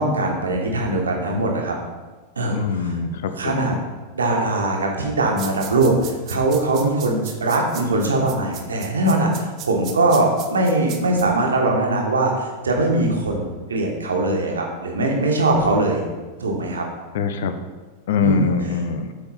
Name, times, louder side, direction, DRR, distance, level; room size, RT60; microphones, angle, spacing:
voice 1, 0.0-1.8 2.4-2.9 3.4-3.7 4.1-16.0 16.4-16.8 18.2-18.5, right 2 dB, 70° right, 1 dB, 1.4 m, -21 dB
voice 2, 2.5-3.8 17.1-17.5 18.1-19.1, left 5 dB, 55° left, 8 dB, 0.7 m, -23 dB
sound 1, 5.4-11.2, right 9 dB, 35° right, 0.9 m, -36 dB
8.0 x 5.1 x 4.2 m, 1.3 s
figure-of-eight pair, 90°, 0 cm